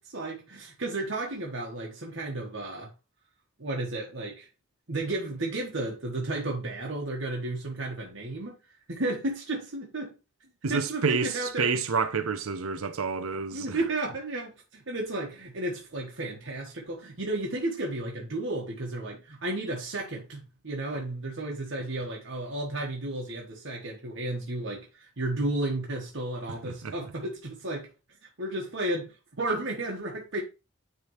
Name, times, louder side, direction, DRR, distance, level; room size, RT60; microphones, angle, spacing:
voice 1, 0.0-2.9 3.6-4.5 4.9-8.5 8.9-10.1 10.7-11.8 13.5-27.9 28.4-30.4, right 2 dB, 60° right, 1.2 m, -33 dB
voice 2, 10.6-13.8 26.6-26.9, right 5 dB, 85° right, 0.7 m, -29 dB
9.4 x 3.3 x 3.0 m
head